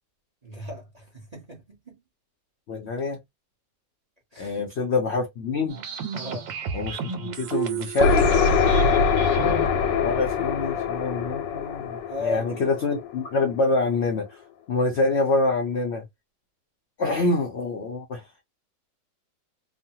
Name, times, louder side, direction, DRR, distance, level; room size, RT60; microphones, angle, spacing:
voice 1, 0.4-2.0 4.3-4.7 6.1-6.5 8.6-9.0 9.3-9.7 12.1-12.7, left 3 dB, 30° right, 0.8 m, -37 dB
voice 2, 2.7-3.2 4.4-5.8 6.7-8.3 9.4-9.6 10.0-14.4 14.7-16.0 17.0-18.2, left 3 dB, 65° left, 0.6 m, -26 dB
sound 1, 5.7-9.7, right 7 dB, 85° right, 1.4 m, -33 dB
sound 2, 8.0-13.6, left 5 dB, 85° left, 1.4 m, -23 dB
3.1 x 2.1 x 2.7 m
omnidirectional pair, 1.9 m